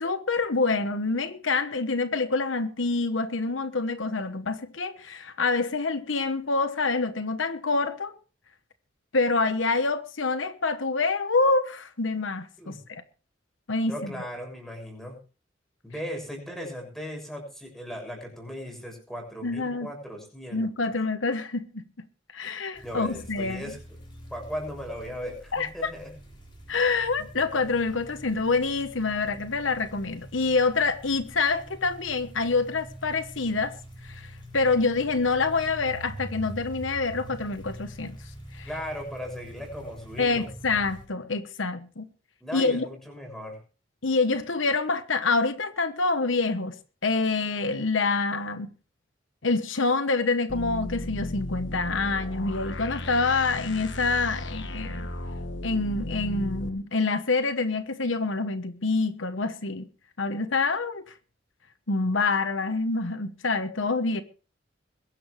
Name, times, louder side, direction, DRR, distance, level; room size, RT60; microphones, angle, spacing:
voice 1, 0.0-8.1 9.1-13.0 13.7-14.1 19.4-19.9 20.5-21.9 22.3-23.7 25.5-25.9 26.7-33.8 34.0-38.2 38.5-38.7 40.2-42.1 42.5-42.8 44.0-46.8 47.0-48.7 49.4-55.1 55.6-59.9 60.2-61.1 61.9-64.2, left 3 dB, 80° left, 1.2 m, -26 dB
voice 2, 13.9-15.2 15.8-20.7 22.8-23.8 24.3-26.1 38.6-40.5 42.4-43.6, equal, ahead, 6.6 m, -37 dB
sound 1, 22.8-41.1, equal, 25° left, 6.0 m, -44 dB
sound 2, 50.5-56.7, left 1 dB, 65° left, 1.5 m, -35 dB
22.0 x 11.5 x 3.3 m
head